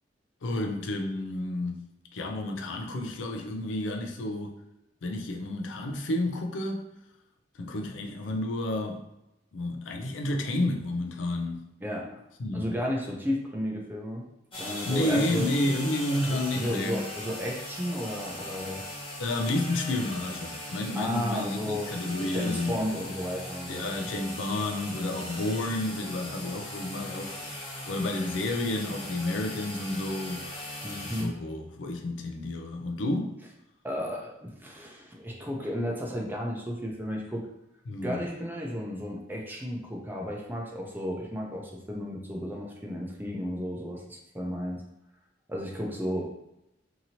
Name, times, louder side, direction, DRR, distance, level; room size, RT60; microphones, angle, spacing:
voice 1, 0.4-1.9 2.1-4.5 5.0-6.8 7.6-9.0 9.5-11.6 12.4-12.6 14.9-17.0 19.2-22.8 23.7-30.4 30.9-33.3 37.9-38.2, left 1 dB, 80° left, 0.5 m, -31 dB
voice 2, 11.8-12.2 12.5-14.2 14.5-15.5 16.3-18.8 20.9-23.9 30.8-31.3 33.8-37.5 38.0-44.8 45.5-46.2, equal, 10° right, 0.5 m, -33 dB
sound 1, 14.5-31.2, left 1 dB, 30° left, 0.8 m, -39 dB
2.9 x 2.7 x 2.7 m
head